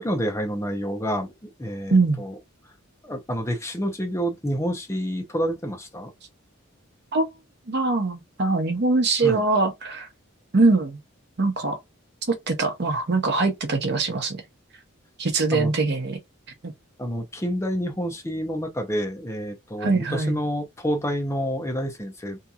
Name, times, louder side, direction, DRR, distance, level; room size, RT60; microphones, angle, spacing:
voice 1, 0.0-2.4 3.0-6.1 9.2-9.4 15.5-15.7 17.0-22.4, equal, 15° left, 0.7 m, -28 dB
voice 2, 1.9-2.2 7.1-7.3 7.7-10.1 10.5-11.0 11.4-11.8 12.3-14.4 15.2-16.2 16.6-16.7 19.8-20.4, right 3 dB, 55° right, 0.8 m, -22 dB
2.8 x 2.6 x 2.3 m
head